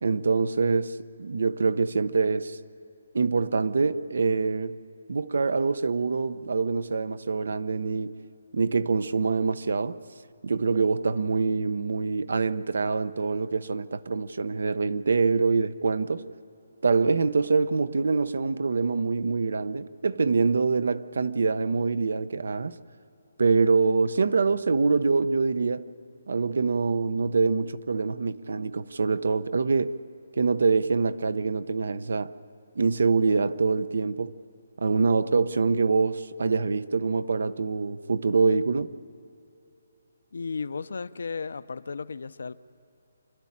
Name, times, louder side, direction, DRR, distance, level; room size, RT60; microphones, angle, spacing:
voice 1, 0.0-2.6 3.1-4.7 5.1-8.1 8.5-10.0 10.4-16.2 16.8-22.7 23.4-25.9 26.3-30.0 30.4-32.3 32.8-34.3 34.8-38.9, right 4 dB, 75° right, 0.7 m, -25 dB
voice 2, 40.3-42.5, left 5 dB, 70° left, 0.6 m, -34 dB
27.0 x 12.0 x 8.7 m
hypercardioid pair, 170°, 0 cm